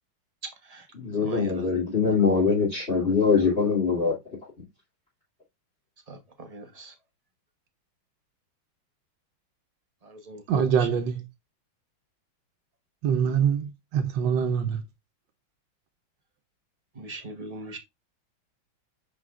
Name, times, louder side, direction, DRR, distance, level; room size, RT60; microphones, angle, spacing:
voice 1, 0.4-2.5 3.4-3.5 6.1-6.9 10.0-10.9 16.9-17.8, right 1 dB, 40° right, 0.5 m, -39 dB
voice 2, 0.9-4.2, left 5 dB, 30° left, 2.8 m, -23 dB
voice 3, 10.5-11.2 13.0-14.8, right 7 dB, 70° right, 1.4 m, -24 dB
10.0 x 4.0 x 2.4 m
omnidirectional pair, 2.3 m